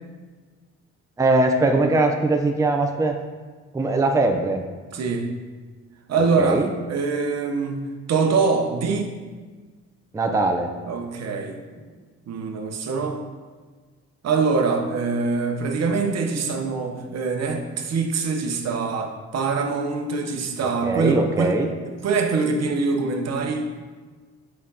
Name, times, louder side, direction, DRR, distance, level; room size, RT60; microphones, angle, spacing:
voice 1, 1.2-3.2 3.7-4.6 6.4-6.7 10.1-10.7 20.8-21.7, right 2 dB, 10° right, 4 dB, 0.5 m, -21 dB
voice 2, 4.9-5.4 6.1-9.1 10.9-11.6 12.3-13.2 14.2-21.6 21.8-23.7, right 4 dB, 60° right, 4 dB, 0.8 m, -24 dB
7.3 x 5.1 x 2.8 m, 1.4 s
cardioid pair, 90°, 30 cm